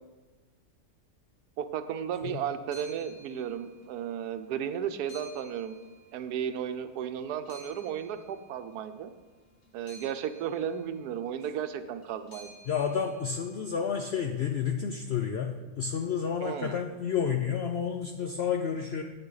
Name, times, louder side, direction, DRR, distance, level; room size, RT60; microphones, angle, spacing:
voice 1, 1.6-5.8 6.1-9.1 9.7-12.5 16.4-16.8, right 8 dB, 85° right, 10 dB, 1.2 m, -34 dB
sound 1, 2.6-4.2 4.5-6.8 7.2-13.7, equal, 40° left, 1.7 m, -54 dB
voice 2, 12.7-19.0, left 7 dB, 70° left, 5 dB, 0.6 m, -30 dB
8.9 x 8.6 x 4.0 m, 1.3 s
omnidirectional pair, 1.6 m